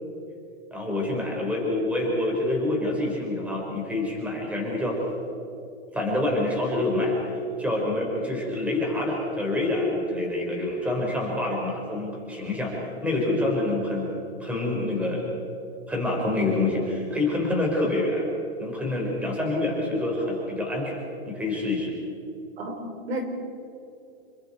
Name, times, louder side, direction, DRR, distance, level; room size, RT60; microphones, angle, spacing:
voice 1, 0.7-5.0 5.9-7.2 7.6-12.7 13.0-14.1 14.4-15.3 15.9-18.3 18.6-21.9, left 2 dB, 5° right, -2 dB, 4.7 m, -26 dB
voice 2, 22.6-23.3, right 1 dB, 70° right, 4 dB, 4.5 m, -32 dB
28.0 x 24.0 x 4.5 m, 2.7 s
hypercardioid pair, 155°, 32 cm